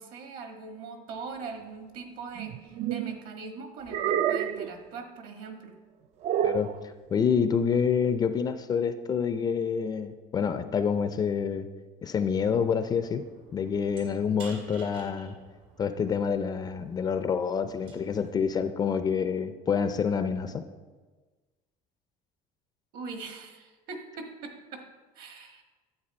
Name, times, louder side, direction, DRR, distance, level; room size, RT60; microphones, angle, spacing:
voice 1, 0.0-5.8 22.9-24.8 25.1-25.6, right 4 dB, 60° right, 4 dB, 1.6 m, -41 dB
sound 1, 2.4-3.2 3.9-4.7 6.2-6.7, right 9 dB, 45° right, 0.4 m, -28 dB
voice 2, 7.1-11.7 12.0-13.3 13.5-15.4 15.8-20.7, left 6 dB, 25° left, 9 dB, 0.4 m, -27 dB
sound 2, 12.3-18.3, right 4 dB, 75° right, 2.6 m, -52 dB
11.5 x 8.2 x 4.2 m, 1.3 s
cardioid pair, 155°, 16 cm